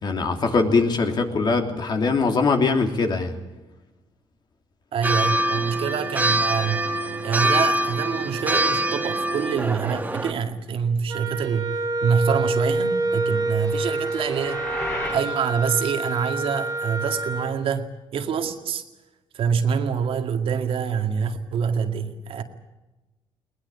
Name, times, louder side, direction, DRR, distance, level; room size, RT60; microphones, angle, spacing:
voice 1, 0.0-3.3, left 4 dB, 45° left, 5 dB, 3.1 m, -22 dB
voice 2, 4.9-6.9 7.2-18.8 19.3-22.4, right 6 dB, 65° right, 6 dB, 2.1 m, -26 dB
sound 1, 5.0-10.3, right 1 dB, 15° right, 1.6 m, -24 dB
Wind instrument woodwind instrument, 11.1-17.6, right 2 dB, 35° right, 2.1 m, -27 dB
sound 2, 13.0-15.3, left 1 dB, 20° left, 4.2 m, -35 dB
21.0 x 19.5 x 8.5 m, 1.1 s
cardioid pair, 105°, 10 cm